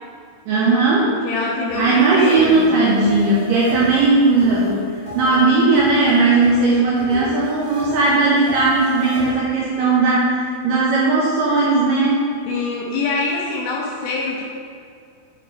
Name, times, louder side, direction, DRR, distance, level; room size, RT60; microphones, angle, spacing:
voice 1, 0.5-1.1 1.8-4.8 5.2-12.2, right 3 dB, 75° right, -6 dB, 2.1 m, -17 dB
voice 2, 1.1-3.0 12.5-14.4, left 3 dB, 80° left, -2 dB, 2.2 m, -25 dB
sound 1, 1.7-9.3, left 1 dB, 55° left, 2.5 m, -33 dB
9.3 x 3.6 x 4.3 m, 2.4 s
omnidirectional pair, 4.7 m